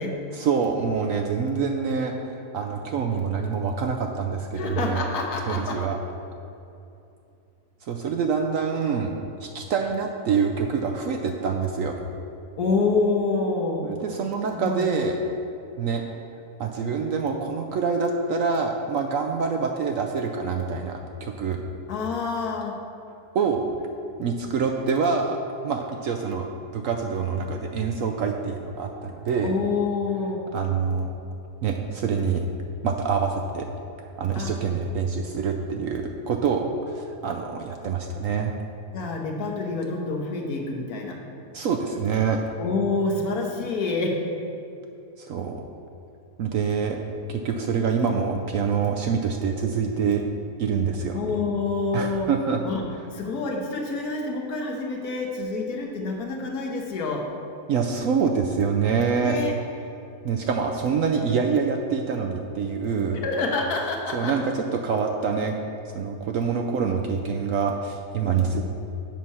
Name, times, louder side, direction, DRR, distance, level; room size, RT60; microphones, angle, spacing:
voice 1, 0.3-5.0 5.5-6.0 7.8-9.1 9.4-12.0 13.8-15.2 15.8-16.0 16.6-21.6 23.3-23.6 24.2-25.4 25.6-26.5 26.7-29.5 30.5-31.2 31.6-32.4 32.8-33.7 34.0-38.5 41.5-42.4 45.2-45.6 46.4-47.0 47.3-50.2 50.6-51.2 51.9-52.6 57.7-59.4 60.2-63.2 64.1-65.6 65.9-68.6, right 5 dB, 70° right, 3 dB, 0.8 m, -26 dB
voice 2, 4.5-5.8 12.6-13.9 14.5-14.9 21.9-22.8 29.4-30.4 34.3-34.5 38.9-41.2 42.6-44.2 51.1-52.3 52.6-52.8 53.1-57.3 59.2-59.5 63.2-64.4, left 3 dB, 65° left, 0 dB, 1.5 m, -27 dB
7.5 x 5.9 x 5.5 m, 2.8 s
omnidirectional pair, 1.8 m